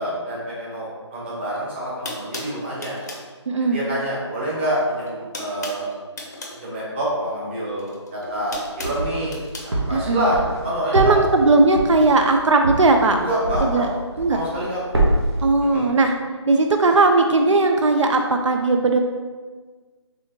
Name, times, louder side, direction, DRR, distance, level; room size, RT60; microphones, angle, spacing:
voice 1, 0.0-3.0 3.6-5.9 6.6-9.4 9.6-11.2 13.2-13.8 14.3-14.8 15.6-15.9, right 1 dB, 25° right, -7 dB, 1.1 m, -27 dB
sound 1, 1.5-1.6 2.0-3.3 4.5-4.8 5.0-6.6 7.8-9.7, left 2 dB, 35° left, 0.6 m, -36 dB
voice 2, 3.5-3.8 9.9-10.2 10.9-13.2 13.6-13.9 14.2-14.4 15.4-16.1 16.5-19.0, right 3 dB, 85° right, 4 dB, 0.4 m, -17 dB
sound 2, 8.3-9.3 9.7-13.9 14.2-14.7 14.9-15.4, right 2 dB, 60° right, 1.1 m, -24 dB
4.3 x 3.4 x 2.9 m, 1.4 s
figure-of-eight pair, 170°, 15 cm